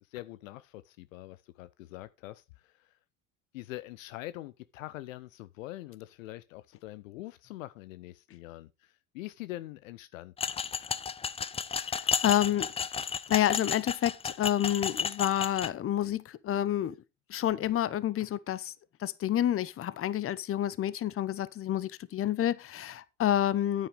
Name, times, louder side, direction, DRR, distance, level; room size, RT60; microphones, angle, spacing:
voice 1, 0.1-3.0 3.5-10.5, left 16 dB, 70° left, 0.6 m, -44 dB
sound 1, 10.4-15.7, left 6 dB, 15° left, 0.5 m, -33 dB
voice 2, 11.8-12.7 13.3-17.0 17.3-18.7 19.0-23.9, left 11 dB, 35° left, 0.8 m, -29 dB
9.3 x 9.1 x 3.4 m
hypercardioid pair, 70°, 40 cm